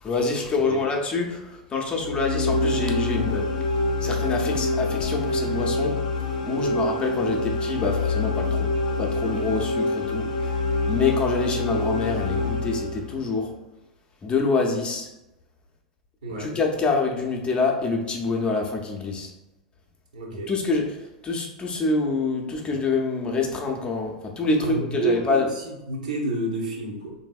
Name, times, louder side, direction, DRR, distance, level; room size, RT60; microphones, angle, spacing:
voice 1, 0.0-3.6 4.0-6.0 6.4-8.7 9.0-10.5 10.9-13.5 14.2-15.1 16.3-19.3 20.5-25.5, left 3 dB, 25° left, 1 dB, 0.6 m, -26 dB
sound 1, 2.0-13.3, left 2 dB, 75° left, 0.5 m, -26 dB
voice 2, 6.4-6.7 16.2-16.5 20.1-20.5 24.6-25.2 25.5-27.1, right 3 dB, 75° right, -1 dB, 0.8 m, -29 dB
3.3 x 2.6 x 2.3 m, 0.95 s
hypercardioid pair, 95°, 4 cm